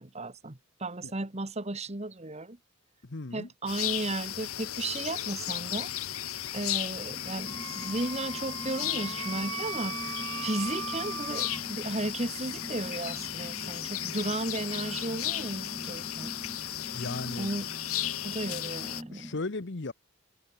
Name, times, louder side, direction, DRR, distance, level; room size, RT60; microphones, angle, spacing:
voice 1, 0.0-2.6 3.3-5.9 6.5-10.0 10.4-16.3 17.4-17.7 18.2-19.3, right 2 dB, 30° right, 1.5 m, -35 dB
voice 2, 3.0-3.5 16.9-17.5 19.1-19.9, left 3 dB, 55° left, 1.0 m, -36 dB
sound 1, 3.7-19.0, left 12 dB, 85° left, 1.3 m, -35 dB
sound 2, 7.1-19.4, equal, 5° right, 0.5 m, -44 dB
Wind instrument woodwind instrument, 7.5-11.6, right 7 dB, 85° right, 1.3 m, -39 dB
head